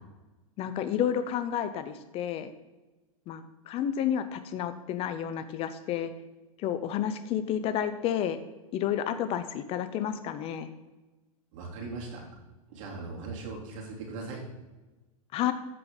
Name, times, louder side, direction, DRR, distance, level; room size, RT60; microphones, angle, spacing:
voice 1, 0.6-2.5 3.3-6.1 6.6-8.4 8.7-10.7 15.3-15.5, left 9 dB, 35° left, 12 dB, 0.6 m, -30 dB
voice 2, 11.5-12.2 12.7-14.4, right 3 dB, 60° right, -1 dB, 3.2 m, -39 dB
13.5 x 5.3 x 3.9 m, 1.1 s
hypercardioid pair, 130°, 18 cm